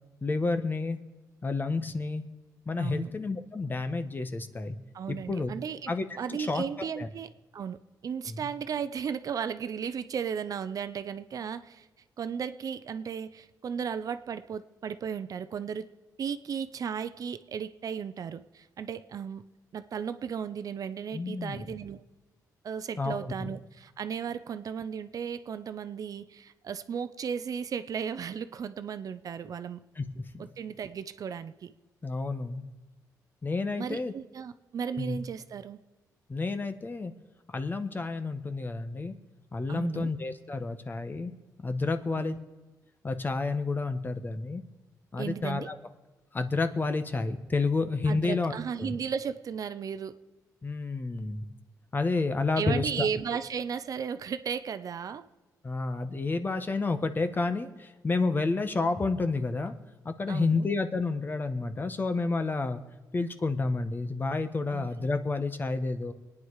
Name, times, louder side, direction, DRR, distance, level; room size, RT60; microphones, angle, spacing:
voice 1, 0.2-1.0 1.4-2.2 2.6-4.8 5.1-5.5 5.9-7.1 8.3-8.5 21.1-21.6 23.0-23.5 29.9-30.4 32.0-32.7 33.4-34.1 34.9-35.2 36.3-37.1 37.5-39.1 39.5-41.3 41.6-42.4 43.0-44.6 45.1-45.8 46.3-48.5 48.8-49.0 50.6-51.5 51.9-53.1 55.6-59.7 60.0-62.8 63.1-66.1, left 3 dB, 30° left, 8 dB, 1.3 m, -30 dB
voice 2, 2.8-3.1 4.9-5.9 6.2-11.9 12.2-15.9 16.2-19.4 19.7-22.0 22.6-29.8 30.6-31.7 33.8-35.8 39.7-40.1 42.1-42.4 45.2-45.7 48.1-50.1 52.6-55.3 60.3-60.7 64.7-64.9, right 7 dB, 60° right, 12 dB, 0.7 m, -35 dB
25.0 x 9.8 x 4.9 m, 1.2 s
cardioid pair, 105°, 7 cm